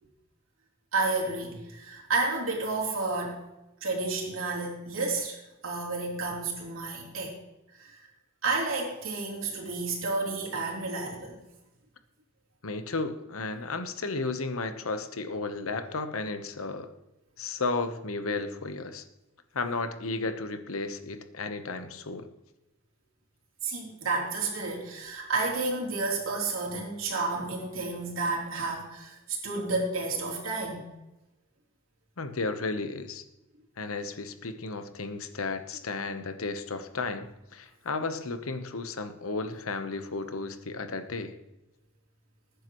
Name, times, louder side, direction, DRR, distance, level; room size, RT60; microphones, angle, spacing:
voice 1, 0.9-3.4 3.8-7.3 7.8-8.0 8.4-11.4 23.6-30.9, right 3 dB, 70° right, -2 dB, 3.4 m, -31 dB
voice 2, 12.6-16.9 17.4-19.0 19.5-22.3 32.2-33.2 33.8-41.4, left 3 dB, 90° left, 9 dB, 1.0 m, -33 dB
20.0 x 9.7 x 3.1 m, 0.98 s
head